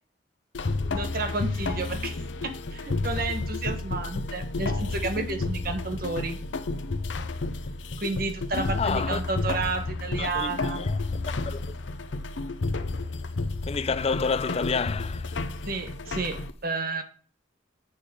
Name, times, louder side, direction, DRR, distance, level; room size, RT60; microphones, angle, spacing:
sound 1, 0.5-16.5, left 3 dB, 90° left, 0.7 m, -31 dB
voice 1, 0.9-6.4 8.0-10.8 15.7-17.0, right 3 dB, 55° right, 1.3 m, -31 dB
voice 2, 8.8-9.2 10.2-11.0 11.5-11.8 13.7-15.4, left 5 dB, 35° left, 0.5 m, -29 dB
8.5 x 3.9 x 6.6 m
head